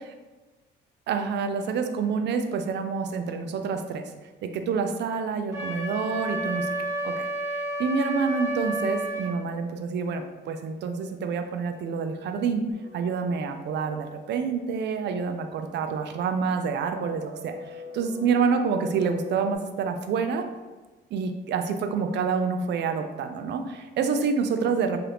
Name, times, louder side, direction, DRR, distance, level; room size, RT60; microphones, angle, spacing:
voice 1, 1.1-4.0 4.4-7.3 7.5-12.6 12.9-20.5 21.1-25.0, right 5 dB, 60° right, 7 dB, 0.4 m, -27 dB
Wind instrument woodwind instrument, 5.5-9.3, right 1 dB, 15° right, 0.8 m, -31 dB
sound 1, 12.7-19.6, left 1 dB, 40° right, 1.2 m, -45 dB
2.8 x 2.4 x 3.3 m, 1.2 s
cardioid pair, 90°, 20 cm